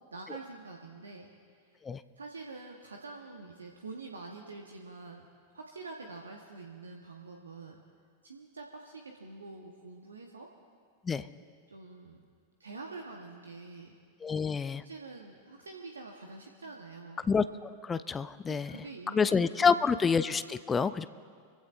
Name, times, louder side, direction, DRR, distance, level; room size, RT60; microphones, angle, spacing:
voice 1, 0.1-1.3 1.6-1.8 2.2-5.3 5.5-7.8 8.2-10.5 11.7-12.3 12.6-14.0 14.7-17.3 18.5-19.9, right 3 dB, 75° right, 1 dB, 1.1 m, -46 dB
voice 2, 14.2-14.8 17.3-18.7 19.1-21.1, left 5 dB, 15° left, 14 dB, 0.4 m, -28 dB
25.0 x 16.0 x 2.5 m, 2.1 s
figure-of-eight pair, 90°, 0 cm